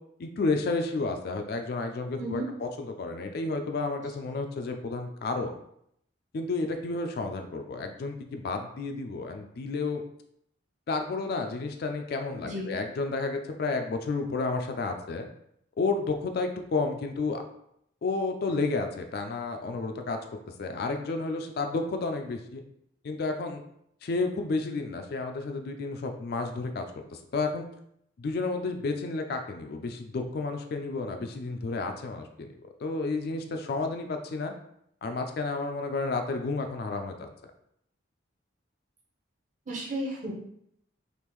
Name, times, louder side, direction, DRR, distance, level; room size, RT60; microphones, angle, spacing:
voice 1, 0.2-5.6 6.3-10.0 10.9-15.3 15.8-17.4 18.0-20.2 20.6-22.6 23.0-23.6 24.0-26.8 27.1-27.7 28.2-34.5 35.0-37.3, left 3 dB, 50° left, 5 dB, 0.3 m, -31 dB
voice 2, 39.7-40.3, right 1 dB, 40° right, -2 dB, 0.7 m, -33 dB
3.5 x 2.4 x 3.0 m, 0.74 s
head